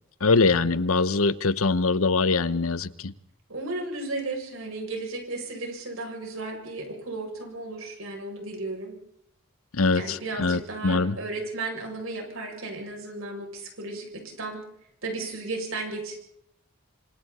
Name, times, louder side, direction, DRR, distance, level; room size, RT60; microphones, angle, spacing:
voice 1, 0.2-3.1 9.7-11.2, left 3 dB, 80° left, 15 dB, 1.0 m, -23 dB
voice 2, 3.5-9.0 9.9-14.6 15.0-16.2, right 2 dB, 75° right, 2 dB, 7.4 m, -34 dB
26.5 x 25.5 x 4.3 m, 0.74 s
head